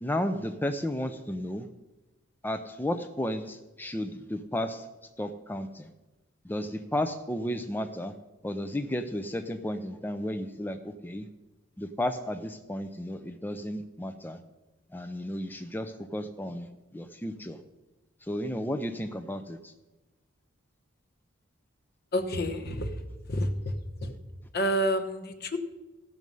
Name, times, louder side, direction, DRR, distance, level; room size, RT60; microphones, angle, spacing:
voice 1, 0.0-1.7 2.4-4.9 5.2-5.9 6.4-8.2 8.4-11.3 11.8-14.4 14.9-17.6 18.2-19.7, left 1 dB, 10° left, 7 dB, 0.5 m, -33 dB
voice 2, 22.1-22.9 23.3-23.7 24.0-24.1 24.5-25.6, equal, 50° left, 8 dB, 1.1 m, -29 dB
16.0 x 6.2 x 5.4 m, 1.1 s
head